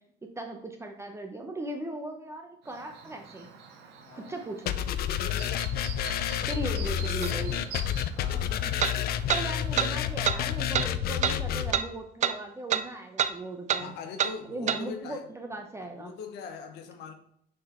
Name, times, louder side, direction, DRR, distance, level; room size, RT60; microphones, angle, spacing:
voice 1, 0.2-3.5 4.1-4.8 6.5-7.7 9.3-13.9 14.4-16.1, right 2 dB, 15° right, 3 dB, 0.8 m, -38 dB
Chirp tweet, 2.6-10.6, right 6 dB, 85° right, 1.2 m, -46 dB
voice 2, 4.0-4.4 6.5-6.9 8.2-8.9 13.8-15.3 15.8-17.1, left 5 dB, 85° left, 6 dB, 1.1 m, -42 dB
sound 1, 4.7-11.7, left 10 dB, 65° left, 0.5 m, -29 dB
sound 2, 7.2-7.3 8.8-8.9 9.3-9.4 9.8-9.9 10.2-10.4 10.7-10.9 11.2-11.4 11.7-11.9 12.2-12.4 12.7-12.8 13.2-13.3 13.7-13.8 14.2-14.3 14.7-14.8, right 9 dB, 45° right, 0.5 m, -26 dB
6.4 x 3.9 x 4.3 m, 0.70 s
cardioid pair, 110°, 17 cm